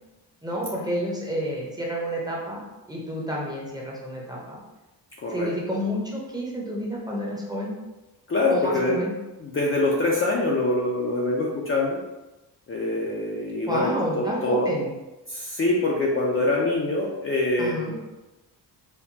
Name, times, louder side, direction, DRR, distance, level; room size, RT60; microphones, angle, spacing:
voice 1, 0.4-2.6 2.9-4.6 5.3-7.7 8.5-9.1 13.7-14.9 17.6-17.9, equal, 10° right, -4 dB, 0.7 m, -29 dB
voice 2, 8.3-8.9 9.4-12.0 12.7-13.9 14.2-14.7 15.3-17.9, left 2 dB, 30° left, -4 dB, 0.4 m, -24 dB
4.4 x 2.2 x 2.7 m, 1.1 s
wide cardioid pair, 135°, 42 cm